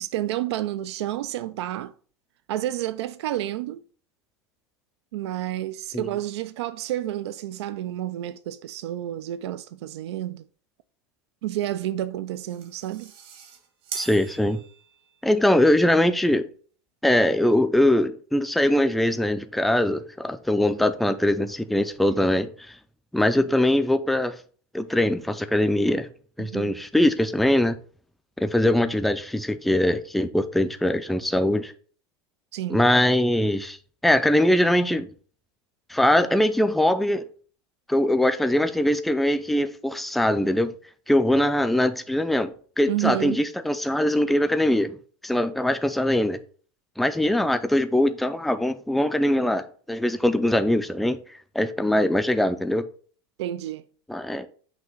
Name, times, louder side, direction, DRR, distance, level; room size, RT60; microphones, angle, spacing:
voice 1, 0.0-1.9 2.5-3.8 5.1-10.4 11.4-13.1 26.4-26.8 32.5-32.8 42.9-43.4 53.4-53.8, right 13 dB, 85° right, 0.4 m, -30 dB
sound 1, 12.3-15.3, right 9 dB, 60° right, 1.6 m, -41 dB
voice 2, 14.0-14.6 15.2-16.5 17.0-22.5 23.1-24.3 24.7-26.1 26.4-27.8 28.4-31.7 32.7-33.8 34.0-35.1 35.9-37.2 37.9-40.7 41.1-45.0 45.2-46.4 47.0-51.2 51.6-52.8 54.1-54.5, left 1 dB, ahead, 0.3 m, -22 dB
6.0 x 2.8 x 5.6 m
supercardioid pair, 140°, 14 cm